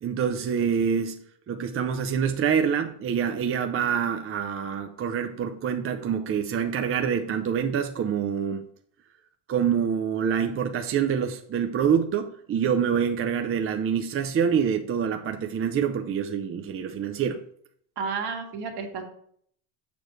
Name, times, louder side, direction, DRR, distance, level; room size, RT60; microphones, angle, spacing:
voice 1, 0.0-8.7 9.5-17.4, right 7 dB, 30° right, 6 dB, 0.5 m, -26 dB
voice 2, 18.0-19.0, right 5 dB, 55° right, 3 dB, 1.8 m, -31 dB
6.9 x 6.2 x 3.1 m, 0.63 s
supercardioid pair, 90°, 47 cm